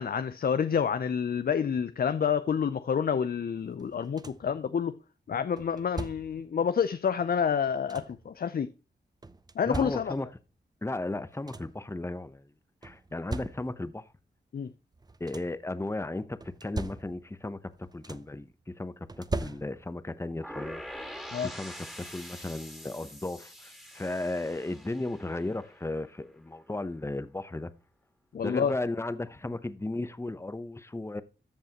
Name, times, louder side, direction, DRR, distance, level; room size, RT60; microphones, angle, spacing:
voice 1, 0.0-4.9 5.3-8.7 9.6-10.1 14.5-14.7 21.3-21.5 28.3-28.7, left 7 dB, 55° left, 0.5 m, -28 dB
sound 1, 3.8-4.6 5.6-6.5 7.4-8.3 9.2-10.4 11.0-11.1 11.3-11.9 12.8-14.0 14.9-15.7 16.4-17.4 17.7-18.5 19.1-20.1 21.4-21.5 22.0-22.2, right 2 dB, 20° right, 0.6 m, -40 dB
voice 2, 9.6-10.3 10.8-12.4 12.8-14.1 15.2-27.7 28.4-31.2, left 2 dB, 15° left, 0.8 m, -35 dB
sound 2, 20.4-26.3, equal, ahead, 2.4 m, -45 dB
13.5 x 5.4 x 2.9 m
cardioid pair, 50°, 18 cm